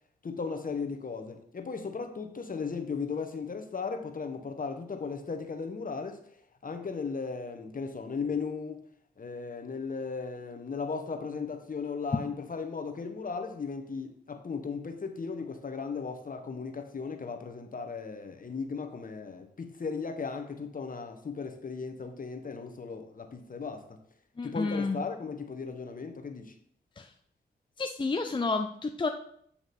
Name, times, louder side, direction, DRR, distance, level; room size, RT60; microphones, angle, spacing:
voice 1, 0.2-6.2 6.6-8.8 9.2-24.0 24.4-26.5, left 5 dB, 45° left, 0.9 m, -36 dB
voice 2, 24.4-25.0 27.0-27.1 27.8-29.1, left 3 dB, 25° left, 0.5 m, -30 dB
8.3 x 2.9 x 4.1 m
supercardioid pair, 40°, 19 cm